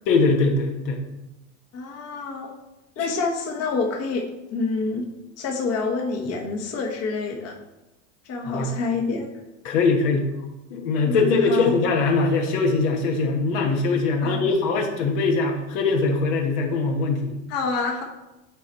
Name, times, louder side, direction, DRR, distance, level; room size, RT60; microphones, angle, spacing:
voice 1, 0.1-1.0 3.0-3.1 8.4-8.7 9.6-10.3 10.7-17.3, left 3 dB, 70° left, 2 dB, 1.4 m, -22 dB
voice 2, 1.7-2.5 3.0-5.1 5.4-7.6 8.2-9.3 11.0-11.7 14.2-14.4 17.5-18.0, left 4 dB, 40° left, 0 dB, 1.2 m, -27 dB
8.3 x 4.0 x 4.4 m, 0.99 s
supercardioid pair, 115°, 39 cm